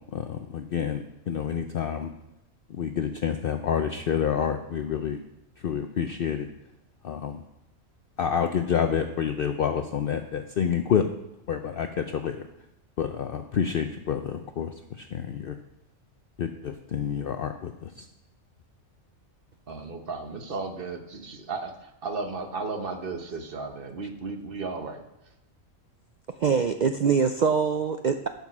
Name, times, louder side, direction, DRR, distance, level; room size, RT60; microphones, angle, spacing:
voice 1, 0.1-2.1 2.7-5.2 5.6-6.5 7.0-7.4 8.2-11.1 11.5-12.5 13.0-15.6 16.4-18.1, left 8 dB, 60° left, 7 dB, 0.6 m, -28 dB
voice 2, 19.7-25.0, right 3 dB, 45° right, 6 dB, 1.1 m, -34 dB
voice 3, 26.4-28.3, right 6 dB, 75° right, 7 dB, 0.4 m, -23 dB
12.0 x 5.5 x 6.0 m, 0.89 s
omnidirectional pair, 1.4 m